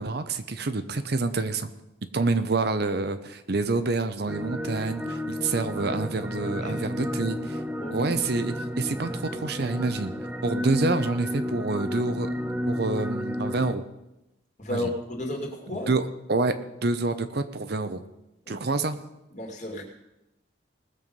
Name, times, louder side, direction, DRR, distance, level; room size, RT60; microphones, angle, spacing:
voice 1, 0.0-1.7 2.1-7.6 7.9-10.1 10.4-12.3 12.7-13.8 14.7-14.9 15.9-18.0 18.5-19.0, right 3 dB, 55° right, 10 dB, 0.7 m, -27 dB
sound 1, 4.3-13.7, equal, 10° right, 0.6 m, -32 dB
voice 2, 7.8-8.1 14.6-15.9 18.5-18.6 19.3-19.8, left 1 dB, 40° left, 1 dB, 2.5 m, -33 dB
19.5 x 7.0 x 5.4 m, 0.92 s
head